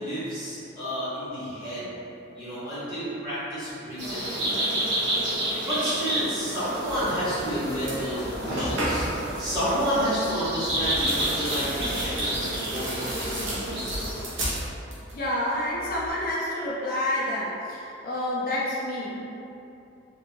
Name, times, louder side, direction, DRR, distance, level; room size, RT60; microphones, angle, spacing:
voice 1, 0.0-1.9 2.3-4.9 5.6-9.1 9.4-13.9, equal, 20° right, -13 dB, 1.4 m, -30 dB
sound 1, 4.0-14.2, right 1 dB, 65° right, 1.1 m, -30 dB
sound 2, 7.3-7.5 7.8-9.3 10.6-15.2 15.5-16.1, right 1 dB, 85° right, 0.9 m, -33 dB
voice 2, 15.1-19.3, left 1 dB, 45° left, -7 dB, 0.5 m, -29 dB
3.6 x 2.7 x 2.8 m, 2.8 s
head